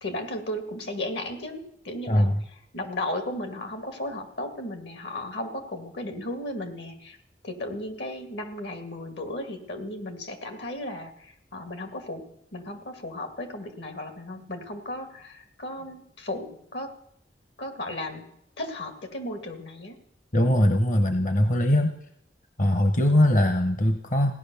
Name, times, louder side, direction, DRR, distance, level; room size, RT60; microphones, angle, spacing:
voice 1, 0.0-2.3 2.7-7.2 7.4-12.3 12.5-16.9 17.6-18.3 18.6-20.0, left 1 dB, 75° left, 7 dB, 2.2 m, -35 dB
voice 2, 2.1-2.4 20.3-21.9 22.6-24.3, left 1 dB, 45° left, 7 dB, 0.8 m, -21 dB
16.5 x 10.5 x 7.0 m, 0.74 s
head